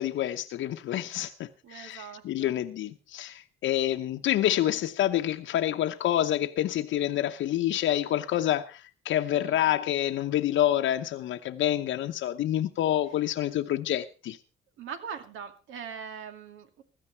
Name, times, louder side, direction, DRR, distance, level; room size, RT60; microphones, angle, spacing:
voice 1, 0.0-14.4, left 12 dB, 80° left, 0.9 m, -28 dB
voice 2, 1.6-2.6 9.3-9.8 14.8-16.8, right 7 dB, 85° right, 2.6 m, -41 dB
16.0 x 13.5 x 4.5 m
cardioid pair, 90°, 20 cm